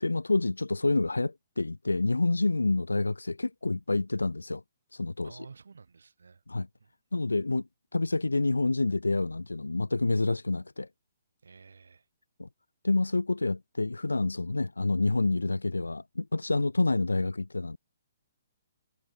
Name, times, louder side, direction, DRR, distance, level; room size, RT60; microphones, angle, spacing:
voice 1, 0.0-4.6 4.9-5.4 6.5-6.7 7.1-7.6 7.9-10.9 12.4-12.5 12.8-17.8, left 2 dB, 80° left, 0.4 m, -28 dB
voice 2, 5.2-6.4 6.8-6.9 11.4-12.1, right 5 dB, 70° right, 7.1 m, -52 dB
figure-of-eight pair, 125°, 0 cm